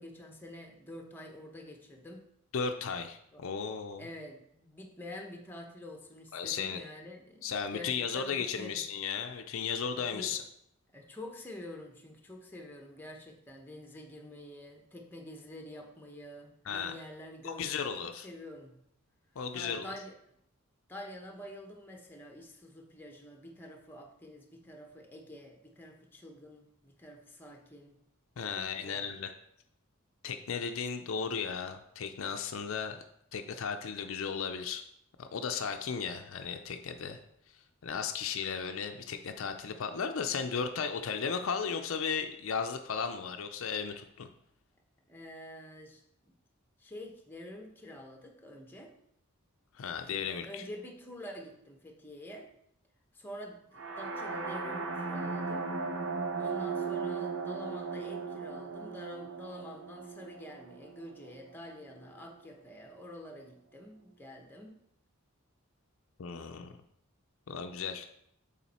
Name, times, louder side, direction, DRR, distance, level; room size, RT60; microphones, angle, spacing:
voice 1, 0.0-2.3 3.3-3.4 4.0-8.8 9.9-10.4 10.9-18.8 19.5-20.1 20.9-28.0 28.5-29.1 45.1-46.0 46.8-48.9 50.2-52.5 53.1-55.7 56.3-64.8, left 1 dB, 10° left, 2 dB, 0.9 m, -47 dB
voice 2, 2.5-4.1 6.3-6.8 7.4-10.4 16.7-16.9 17.4-18.3 19.4-19.9 28.4-29.3 30.2-33.0 33.3-34.8 35.2-37.2 37.8-44.3 49.7-50.7 66.2-66.7 67.5-68.1, left 6 dB, 65° left, 7 dB, 0.5 m, -35 dB
sound 1, 53.7-61.6, right 4 dB, 70° right, 0.8 m, -37 dB
7.2 x 4.2 x 4.2 m, 0.73 s
head